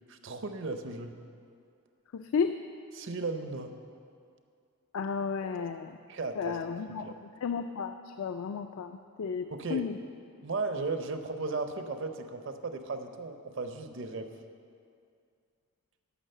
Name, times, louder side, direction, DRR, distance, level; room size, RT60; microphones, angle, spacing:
voice 1, 0.1-1.2 2.9-3.7 6.1-7.2 9.5-9.8 10.4-14.3, right 3 dB, 60° right, 7 dB, 0.7 m, -36 dB
voice 2, 2.1-2.6 4.9-6.0 6.4-10.0, left 6 dB, 75° left, 7 dB, 0.4 m, -33 dB
11.0 x 6.0 x 6.5 m, 2.3 s
head